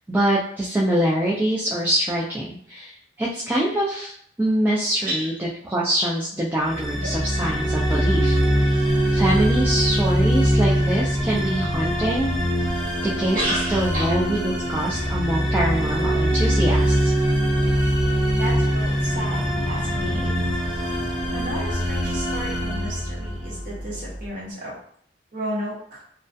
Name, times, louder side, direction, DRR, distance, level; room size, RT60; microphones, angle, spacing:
voice 1, 0.1-8.4 9.1-12.3 13.0-13.4 13.7-17.1, right 1 dB, 10° right, -5 dB, 0.3 m, -24 dB
voice 2, 5.0-5.4 7.0-7.1 12.0-12.2 13.3-14.2 18.4-20.5 21.3-24.8 25.3-26.0, equal, 50° right, -6 dB, 1.0 m, -32 dB
sound 1, 6.6-23.8, equal, 30° right, 0.8 m, -22 dB
sound 2, 19.2-24.3, equal, 20° left, 0.6 m, -36 dB
2.3 x 2.1 x 2.6 m, 0.62 s
head